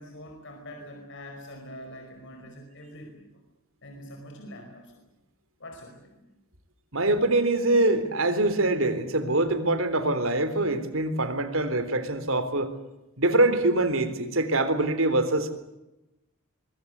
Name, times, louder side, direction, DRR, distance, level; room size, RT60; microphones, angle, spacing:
voice 1, 0.0-3.4 3.8-5.1 5.6-6.3, equal, 60° left, 3 dB, 5.2 m, -44 dB
voice 2, 6.9-12.7 13.2-15.5, right 2 dB, 70° right, 11 dB, 3.6 m, -24 dB
24.5 x 23.0 x 8.2 m, 0.95 s
head